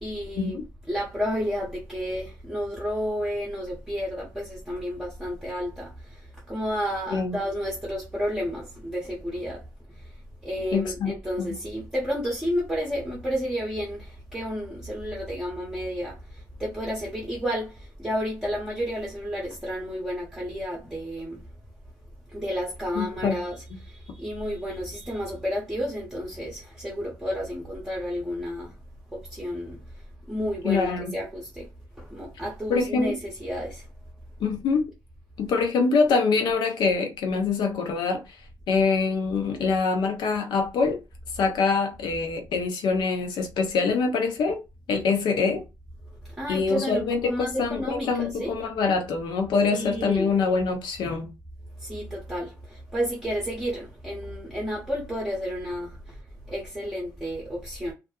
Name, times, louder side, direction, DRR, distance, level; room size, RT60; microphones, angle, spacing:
voice 1, 0.0-0.6 0.9-9.6 9.9-10.1 10.4-21.5 22.3-28.8 29.1-31.7 32.0-33.9 46.2-48.7 49.7-50.3 51.8-56.2 56.5-57.9, equal, 5° right, 0.7 m, -31 dB
voice 2, 10.7-11.5 23.0-23.3 30.6-31.1 32.7-33.2 34.4-34.9 35.4-38.2 38.7-41.0 41.3-44.6 44.9-45.7 46.5-51.3, left 4 dB, 85° left, 0.7 m, -24 dB
2.6 x 2.5 x 2.2 m
cardioid pair, 145°, 7 cm